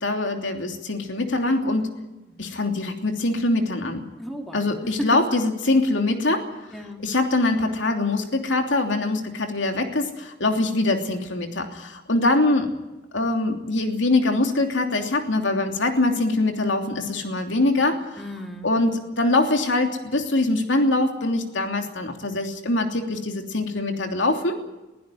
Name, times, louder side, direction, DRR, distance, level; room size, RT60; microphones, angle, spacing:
voice 1, 0.0-1.9 2.4-4.1 4.5-6.5 7.0-12.7 13.1-18.2 18.6-24.6, left 2 dB, 75° left, 4 dB, 3.0 m, -23 dB
voice 2, 2.3-2.6 4.2-4.7 5.0-5.1 6.7-7.0 18.2-18.7, equal, ahead, 2 dB, 3.2 m, -35 dB
23.0 x 16.0 x 9.3 m, 1.0 s
head